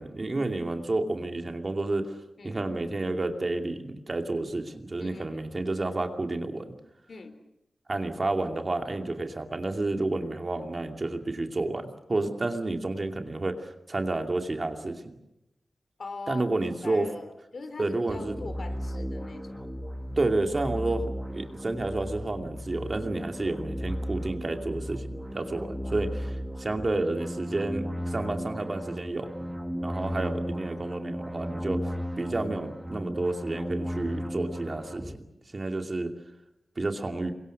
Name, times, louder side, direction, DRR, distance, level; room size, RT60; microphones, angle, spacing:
voice 1, 0.0-6.7 7.9-15.2 16.3-17.1 17.8-18.4 20.2-21.0 21.3-29.5 29.8-35.2 35.5-36.1 36.8-37.3, right 2 dB, 35° right, 5 dB, 2.5 m, -30 dB
voice 2, 5.0-5.5 7.1-7.3 16.0-16.4 16.8-19.7 23.4-23.6, left 3 dB, 55° left, 9 dB, 3.8 m, -42 dB
sound 1, 18.1-35.2, equal, 5° right, 1.6 m, -35 dB
29.0 x 24.0 x 6.6 m, 0.88 s
wide cardioid pair, 135°, 0 cm